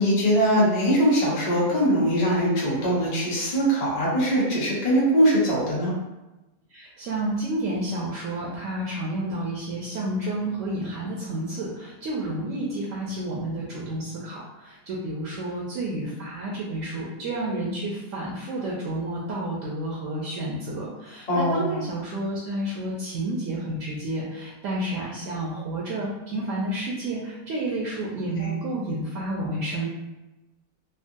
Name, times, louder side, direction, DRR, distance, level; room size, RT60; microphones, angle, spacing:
voice 1, 0.0-5.9 21.3-21.7 28.4-28.5, equal, 35° left, -6 dB, 0.7 m, -22 dB
voice 2, 6.7-29.9, right 1 dB, 70° right, -4 dB, 0.8 m, -30 dB
3.6 x 2.0 x 2.6 m, 1.0 s
omnidirectional pair, 1.7 m